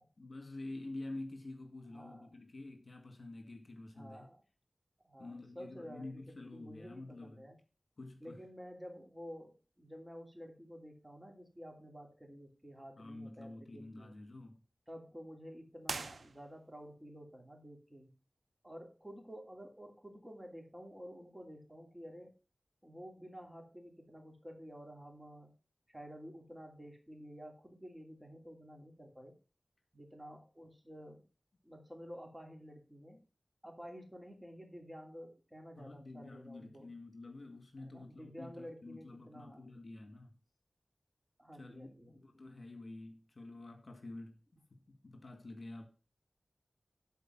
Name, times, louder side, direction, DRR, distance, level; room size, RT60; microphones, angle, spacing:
voice 1, 0.2-4.3 5.2-7.5 8.0-8.4 13.0-14.6 35.8-40.4 41.6-45.9, left 2 dB, 55° left, 2.0 m, -48 dB
voice 2, 1.9-2.3 3.9-4.4 5.0-7.6 8.2-14.1 14.9-18.1 18.6-22.3 22.8-25.5 25.9-29.4 29.9-31.3 31.6-33.2 33.6-36.9 37.8-39.6 41.4-42.2, equal, 15° right, 2.8 m, -51 dB
sound 1, 15.8-16.9, right 4 dB, 85° right, 0.6 m, -43 dB
11.5 x 4.6 x 6.0 m
wide cardioid pair, 70°, 0 cm